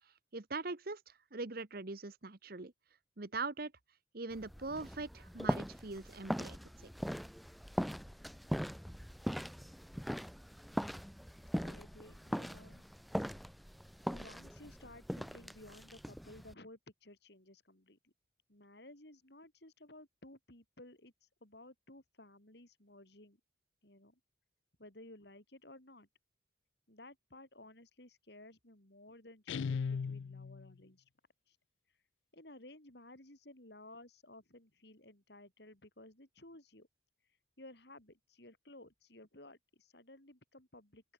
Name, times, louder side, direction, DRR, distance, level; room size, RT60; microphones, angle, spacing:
voice 1, 0.3-1.0 1.3-2.7 3.2-3.7 4.1-6.6, right 3 dB, 50° right, 1.1 m, -41 dB
sound 1, 4.3-16.5, equal, ahead, 1.3 m, -41 dB
voice 2, 11.5-12.8 14.1-18.1 18.5-23.4 23.8-24.2 24.8-26.1 26.9-31.0 31.5-31.6 32.3-36.9 37.6-41.0, left 1 dB, 55° left, 3.7 m, -56 dB
Guitar, 29.5-30.7, left 5 dB, 70° left, 0.4 m, -37 dB
open air
head